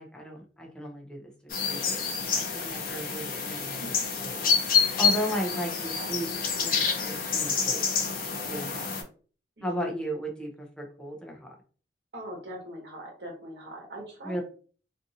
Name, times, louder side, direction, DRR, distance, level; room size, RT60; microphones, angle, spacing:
voice 1, 0.0-4.5 4.8-6.3 6.6-8.1 8.5-9.0 9.6-11.6 14.2-14.4, equal, 5° left, 0 dB, 0.5 m, -36 dB
sound 1, 1.5-9.0, left 5 dB, 50° left, 0.6 m, -28 dB
voice 2, 9.6-10.0 12.1-14.4, equal, 65° right, 0 dB, 1.1 m, -41 dB
2.6 x 2.5 x 2.7 m, 0.41 s
head